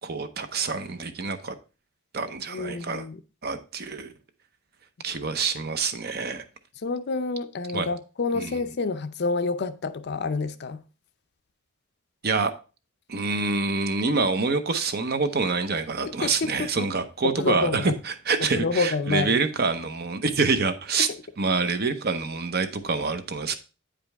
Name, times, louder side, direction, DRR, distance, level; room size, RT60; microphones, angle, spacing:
voice 1, 0.0-1.5 2.1-3.1 3.4-4.1 5.0-6.4 7.7-7.9 8.3-8.6 12.2-12.5 13.1-21.1 21.4-23.6, right 4 dB, 45° right, 0.7 m, -26 dB
voice 2, 2.5-3.2 6.8-10.8 16.0-16.9 17.2-17.9 18.4-19.4, left 4 dB, 50° left, 0.5 m, -28 dB
8.8 x 5.1 x 3.5 m
head